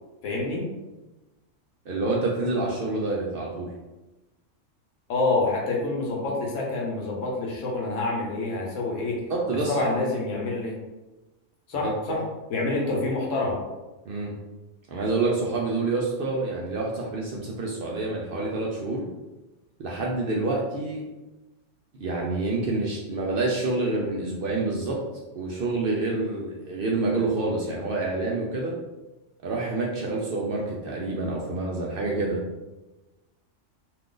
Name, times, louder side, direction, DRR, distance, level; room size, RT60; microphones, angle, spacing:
voice 1, 0.2-0.7 5.1-9.2 9.7-10.8 11.7-12.2 12.5-13.6, left 2 dB, 80° left, -1 dB, 1.1 m, -27 dB
voice 2, 1.9-3.7 9.3-9.9 11.8-11.9 14.0-14.3 14.9-19.0 19.8-21.0 21.9-25.0 25.3-28.7 29.4-32.4, right 3 dB, 60° right, -3 dB, 0.6 m, -27 dB
2.5 x 2.4 x 3.7 m, 1.1 s
omnidirectional pair, 1.3 m